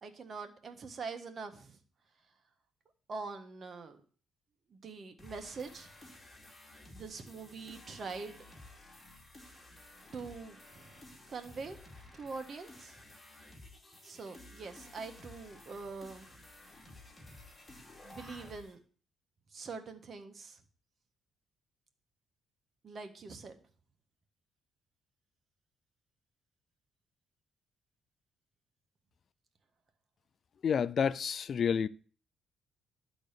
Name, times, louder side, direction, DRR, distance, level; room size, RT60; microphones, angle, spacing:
voice 1, 0.0-1.8 3.1-4.0 4.7-6.1 6.9-8.4 10.1-11.8 12.1-13.0 14.0-16.3 18.0-18.8 19.5-20.6 22.8-23.6, right 4 dB, 45° right, 1.5 m, -44 dB
sound 1, 5.2-18.7, left 2 dB, 20° left, 2.6 m, -54 dB
voice 2, 30.6-31.9, left 7 dB, 50° left, 0.4 m, -29 dB
12.0 x 4.0 x 6.7 m
cardioid pair, 90°, 0 cm